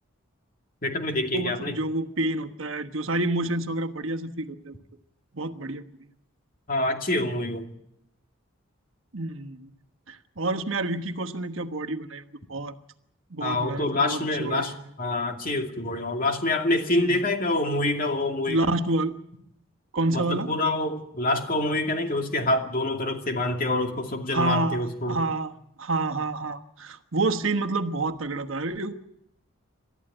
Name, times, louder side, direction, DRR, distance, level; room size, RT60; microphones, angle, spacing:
voice 1, 0.8-1.8 6.7-7.7 13.4-18.7 20.1-25.2, left 2 dB, 45° left, 4 dB, 2.4 m, -26 dB
voice 2, 1.3-4.7 5.3-5.8 9.1-9.7 10.1-12.2 12.5-12.7 13.3-14.7 17.0-17.2 18.5-19.2 19.9-20.5 24.3-25.5 25.8-28.9, right 2 dB, 75° right, 6 dB, 1.3 m, -28 dB
28.5 x 13.5 x 9.0 m, 0.78 s
head